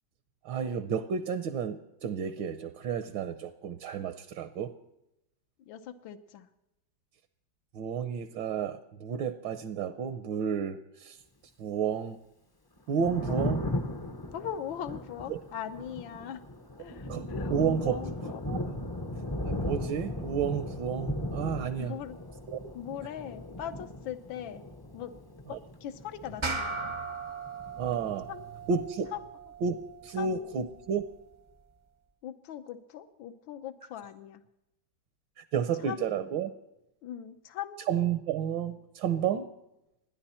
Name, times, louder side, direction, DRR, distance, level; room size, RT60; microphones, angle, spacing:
voice 1, 0.4-4.7 7.7-11.2 11.6-12.2 12.9-13.7 15.3-15.4 17.1-18.0 18.5-18.6 19.4-21.9 22.5-22.6 25.5-25.6 27.8-28.3 28.7-29.1 29.6-29.8 30.0-31.0 35.5-36.5 37.9-39.5, right 7 dB, 75° right, 10 dB, 1.5 m, -31 dB
voice 2, 5.7-6.5 13.3-13.4 14.3-16.4 16.8-18.4 21.8-22.2 22.7-24.6 24.9-25.1 25.5-26.8 28.3-28.4 29.1-29.2 30.2-30.5 32.2-34.4 35.8-36.1 37.0-37.8, left 10 dB, 80° left, 10 dB, 1.6 m, -40 dB
Thunder, 12.8-27.2 27.5-28.7, left 1 dB, 25° left, 0.4 m, -37 dB
sound 1, 26.4-31.2, right 3 dB, 45° right, 0.3 m, -39 dB
29.5 x 10.5 x 4.3 m, 0.90 s
omnidirectional pair, 2.1 m